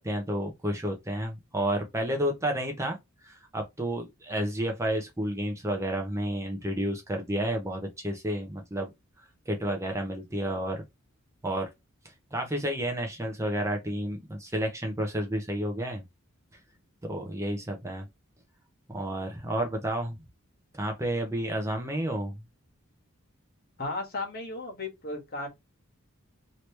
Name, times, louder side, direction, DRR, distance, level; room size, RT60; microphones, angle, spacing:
voice 1, 0.0-3.0 3.2-8.9 9.2-10.8 11.4-11.7 12.3-16.0 17.0-18.0 18.9-20.2 20.7-22.3, right 1 dB, 15° right, 0.7 m, -31 dB
voice 2, 23.8-25.5, left 2 dB, 45° left, 1.4 m, -35 dB
3.1 x 2.9 x 3.2 m
head